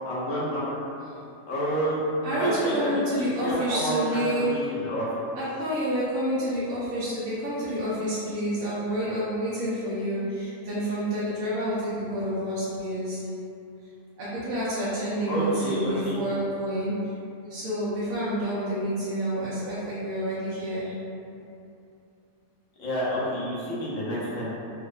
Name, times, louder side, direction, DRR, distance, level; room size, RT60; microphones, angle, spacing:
voice 1, 0.1-0.6 1.5-2.0 2.3-3.0 3.4-5.1 15.3-16.2 22.8-24.5, equal, 70° left, -8 dB, 1.2 m, -29 dB
voice 2, 2.2-4.7 5.4-13.2 14.2-17.0 17.5-21.0, equal, 90° right, -10 dB, 1.1 m, -29 dB
3.5 x 2.6 x 2.2 m, 2.7 s
omnidirectional pair, 1.5 m